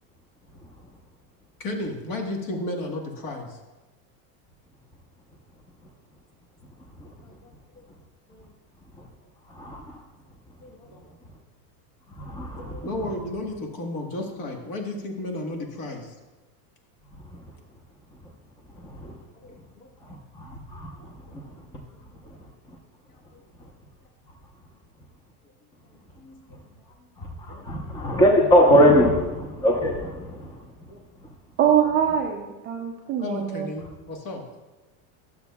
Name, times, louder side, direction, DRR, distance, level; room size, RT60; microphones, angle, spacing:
voice 1, 1.6-3.6 7.2-7.8 8.3-8.5 10.6-11.2 12.7-16.1 19.4-19.9 21.0-21.2 23.1-23.4 26.2-26.4 26.8-27.1 27.5-27.7 30.9-31.0 33.2-34.4, left 1 dB, 40° left, 2 dB, 1.5 m, -34 dB
voice 2, 9.5-10.0 12.2-12.9 19.0-19.1 20.3-20.9 21.3-21.4 27.2-30.6, equal, 10° left, 1 dB, 0.7 m, -21 dB
voice 3, 31.6-33.7, right 9 dB, 25° right, 1 dB, 0.4 m, -23 dB
12.0 x 7.1 x 2.3 m, 1.1 s
supercardioid pair, 140°, 45 cm